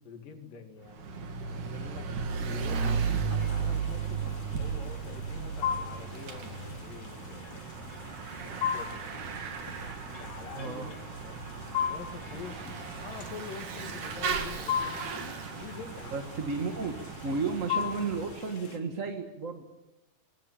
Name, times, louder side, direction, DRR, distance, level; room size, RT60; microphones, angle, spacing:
voice 1, 0.0-4.2 4.6-7.7 8.3-10.8 11.1-11.5 11.9-16.1 17.2-17.4, left 6 dB, 75° left, 6 dB, 4.0 m, -46 dB
Bicycle / Mechanisms, 0.9-18.5, right 6 dB, 65° right, 3.7 m, -36 dB
sound 1, 3.4-18.8, left 8 dB, 35° left, 3.4 m, -39 dB
voice 2, 10.5-10.9 16.1-17.0 17.2-19.8, right 4 dB, 40° right, 5 dB, 1.1 m, -33 dB
25.0 x 21.0 x 8.9 m, 0.95 s
omnidirectional pair, 3.9 m